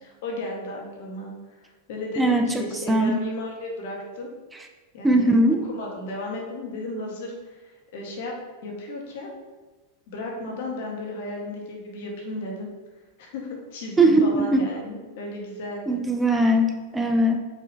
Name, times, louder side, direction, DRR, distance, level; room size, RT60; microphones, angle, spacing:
voice 1, 0.0-4.3 4.9-5.3 5.6-8.4 8.6-9.3 10.1-12.7 13.2-16.0, left 2 dB, 65° left, 0 dB, 1.8 m, -34 dB
voice 2, 2.2-2.5 2.9-3.1 5.0-5.6 14.0-14.7 15.9-17.4, right 1 dB, 10° right, 5 dB, 0.5 m, -20 dB
4.9 x 3.9 x 5.6 m, 1.2 s
hypercardioid pair, 130°, 0 cm